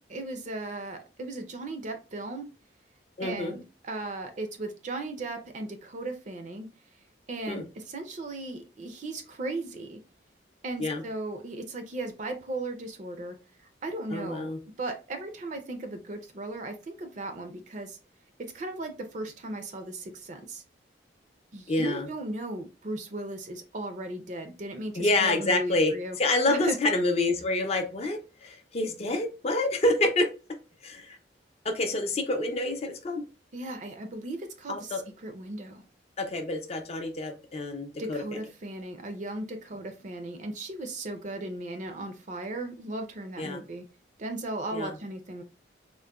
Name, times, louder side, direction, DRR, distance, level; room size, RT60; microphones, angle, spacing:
voice 1, 0.0-2.5 3.2-6.7 7.3-10.0 10.6-13.4 13.8-14.5 14.8-18.0 18.4-20.6 21.5-26.2 26.5-26.8 33.5-35.8 38.0-43.9 44.2-45.4, right 2 dB, 45° right, 6 dB, 0.5 m, -36 dB
voice 2, 3.2-3.6 7.5-7.6 10.8-11.0 14.1-14.6 21.7-22.1 25.0-30.3 30.8-31.2 31.6-33.2 34.7-35.0 36.2-38.4 43.4-43.6 44.7-45.0, left 2 dB, 35° left, 5 dB, 0.5 m, -27 dB
3.7 x 2.1 x 2.3 m, 0.31 s
head